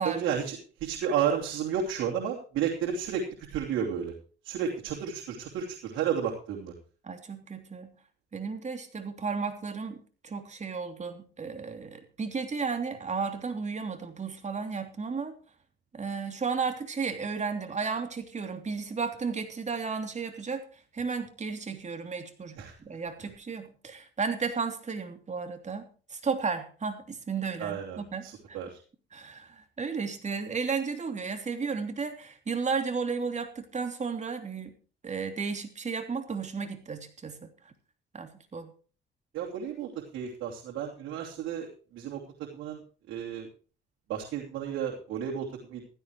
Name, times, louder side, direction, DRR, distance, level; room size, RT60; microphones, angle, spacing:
voice 1, 0.0-3.2 3.5-4.1 4.4-6.7 22.6-22.7 27.6-28.8 39.3-42.8 43.1-43.5 44.1-45.9, right 8 dB, 90° right, -1 dB, 2.9 m, -32 dB
voice 2, 7.0-8.0 8.3-15.3 15.9-28.6 29.1-34.8 35.0-37.7 38.1-38.7, right 5 dB, 35° right, 6 dB, 3.0 m, -34 dB
15.5 x 14.0 x 3.1 m, 0.38 s
cardioid pair, 90°, 20 cm